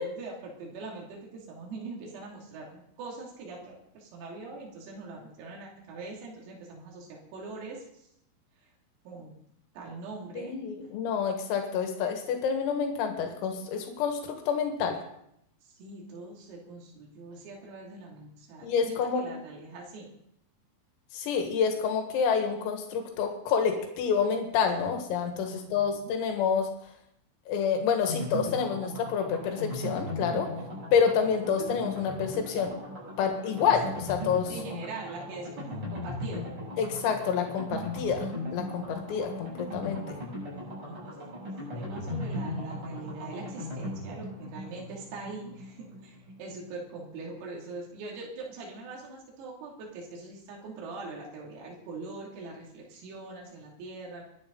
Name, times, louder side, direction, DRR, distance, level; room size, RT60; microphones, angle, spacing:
voice 1, 0.0-8.1 9.1-9.3 9.8-10.5 15.6-20.1 25.5-26.2 34.5-36.5 40.8-41.2 41.7-54.2, right 3 dB, 90° right, -2 dB, 5.4 m, -42 dB
voice 2, 10.4-15.0 18.6-19.2 21.1-26.7 27.5-30.5 30.9-32.7 33.2-34.5 36.8-40.2, left 6 dB, 85° left, 4 dB, 4.4 m, -28 dB
sound 1, 28.1-46.7 47.0-47.1 47.3-47.4, left 1 dB, 25° right, 7.8 m, -38 dB
22.5 x 11.5 x 3.9 m, 0.73 s
omnidirectional pair, 5.9 m